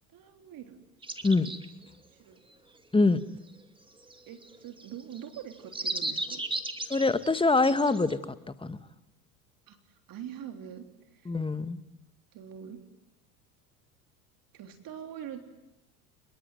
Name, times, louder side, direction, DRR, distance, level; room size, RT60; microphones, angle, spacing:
voice 1, 0.1-0.8 2.1-2.4 4.3-6.4 9.7-9.8 10.1-10.9 11.1-11.3 12.3-12.8 14.5-15.4, right 9 dB, 45° right, 6 dB, 3.7 m, -43 dB
sound 1, 1.0-1.8 4.0-8.1, right 2 dB, 10° right, 2.6 m, -36 dB
voice 2, 2.9-3.2 6.9-8.2 8.6-8.8 11.2-11.8, left 3 dB, 10° left, 13 dB, 1.5 m, -24 dB
28.0 x 23.0 x 9.2 m, 0.96 s
hypercardioid pair, 80°, 46 cm